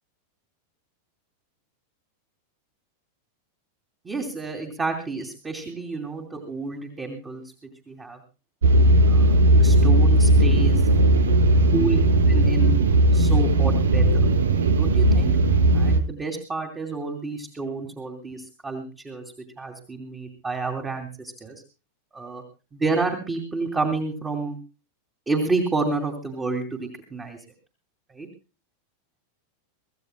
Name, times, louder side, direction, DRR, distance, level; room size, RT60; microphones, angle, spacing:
voice 1, 4.0-7.4 7.9-8.2 9.0-10.8 11.7-12.0 12.3-12.8 13.1-14.3 14.8-15.3 15.7-19.2 19.6-21.5 22.1-22.4 22.7-24.5 25.3-27.4 28.1-28.3, right 3 dB, 15° right, 2 dB, 2.9 m, -29 dB
sound 1, 8.6-16.0, right 1 dB, 65° right, 1.5 m, -17 dB
25.0 x 15.5 x 2.2 m, 0.32 s
figure-of-eight pair, 90°, 0 cm